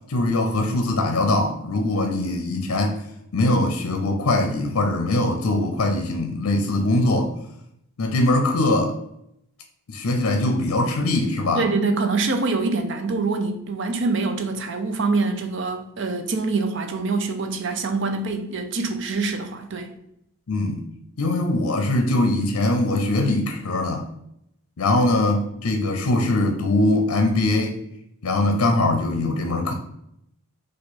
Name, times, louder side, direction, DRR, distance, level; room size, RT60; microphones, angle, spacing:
voice 1, 0.1-3.0 3.3-7.3 8.0-9.0 9.9-11.6 20.5-20.9 21.2-24.0 24.8-27.8 28.2-29.7, left 2 dB, 75° left, 4 dB, 0.6 m, -22 dB
voice 2, 11.5-19.9, right 3 dB, 55° right, 6 dB, 0.5 m, -25 dB
4.4 x 2.5 x 4.1 m, 0.77 s
head